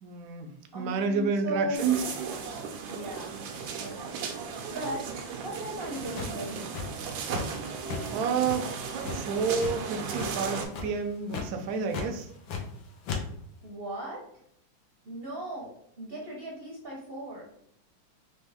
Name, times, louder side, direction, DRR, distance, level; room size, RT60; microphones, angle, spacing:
voice 1, 0.0-2.0 8.1-8.7 9.1-12.3, right 5 dB, 70° right, 5 dB, 1.0 m, -29 dB
voice 2, 0.7-1.9 2.9-3.3 3.8-6.7 13.6-14.2 15.1-17.5, right 1 dB, 45° right, -2 dB, 0.7 m, -37 dB
sound 1, 1.7-10.7, right 6 dB, 85° right, 1.4 m, -36 dB
sound 2, 6.1-7.6 7.9-8.0 8.4-9.7 10.1-10.4 10.7-11.0 11.3-11.5 11.9-12.8 13.0-13.2, left 6 dB, 80° left, 1.5 m, -35 dB
4.4 x 3.0 x 3.4 m, 0.67 s
omnidirectional pair, 2.1 m